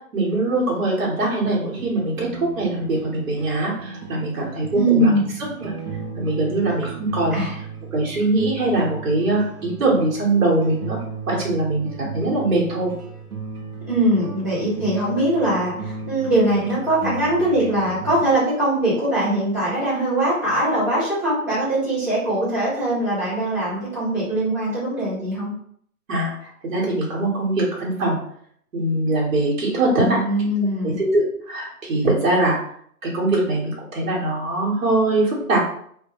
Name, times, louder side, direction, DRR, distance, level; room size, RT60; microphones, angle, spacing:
voice 1, 0.1-5.1 5.6-5.7 6.2-7.5 7.9-11.0 11.3-12.9 26.1-28.2 28.7-30.2 30.8-32.6 33.0-35.6, right 2 dB, 60° right, -5 dB, 1.2 m, -22 dB
sound 1, 1.4-18.3, right 4 dB, 90° right, 0.8 m, -36 dB
voice 2, 4.7-5.2 7.3-7.5 13.9-25.5 30.0-31.0, right 1 dB, 10° right, -14 dB, 0.7 m, -21 dB
2.2 x 2.2 x 2.9 m, 0.64 s
hypercardioid pair, 165°, 44 cm